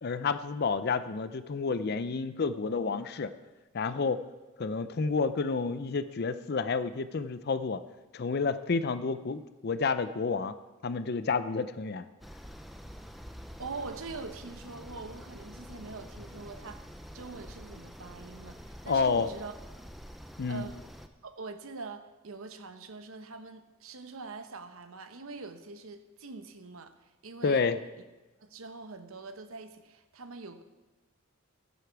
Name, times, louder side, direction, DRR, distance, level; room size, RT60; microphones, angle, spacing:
voice 1, 0.0-3.3 3.7-4.2 4.6-7.8 8.1-10.6 10.8-12.1 18.9-19.3 20.4-20.7 27.4-27.8, left 4 dB, 50° left, 12 dB, 0.5 m, -30 dB
sound 1, 12.2-21.1, equal, ahead, 0.5 m, -47 dB
voice 2, 13.6-19.5 20.5-20.9 21.2-27.7 28.4-30.6, right 3 dB, 85° right, 9 dB, 0.9 m, -44 dB
15.0 x 8.2 x 4.7 m, 1.1 s
head